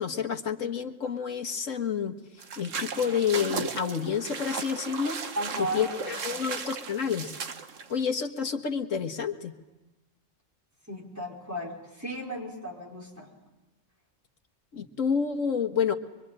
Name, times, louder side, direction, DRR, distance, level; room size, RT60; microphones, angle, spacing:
voice 1, 0.0-2.2 2.6-5.2 5.6-7.3 7.9-9.5 14.7-15.9, left 7 dB, 85° left, 5 dB, 1.9 m, -29 dB
sound 1, 2.4-8.0, right 5 dB, 80° right, 1.6 m, -36 dB
voice 2, 5.3-6.5 10.9-13.3, right 1 dB, 15° right, -1 dB, 5.1 m, -36 dB
24.5 x 24.5 x 8.9 m, 1.1 s
omnidirectional pair, 1.3 m